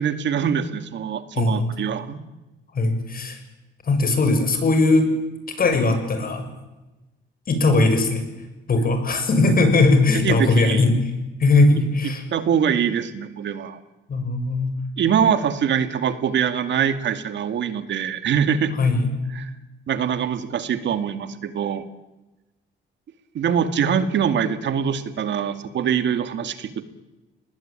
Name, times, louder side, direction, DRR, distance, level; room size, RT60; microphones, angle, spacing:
voice 1, 0.0-2.2 9.4-9.5 10.1-10.8 12.3-13.8 15.0-18.7 19.3-19.5 19.9-21.8 23.3-26.8, right 8 dB, 65° right, 10 dB, 2.2 m, -23 dB
voice 2, 1.4-1.7 2.7-3.4 3.8-5.1 5.6-6.4 7.5-8.2 8.7-10.9 11.4-12.2 14.1-14.7 18.8-19.1, left 3 dB, 45° left, 7 dB, 7.0 m, -19 dB
27.5 x 20.5 x 9.0 m, 1.1 s
cardioid pair, 90°, 20 cm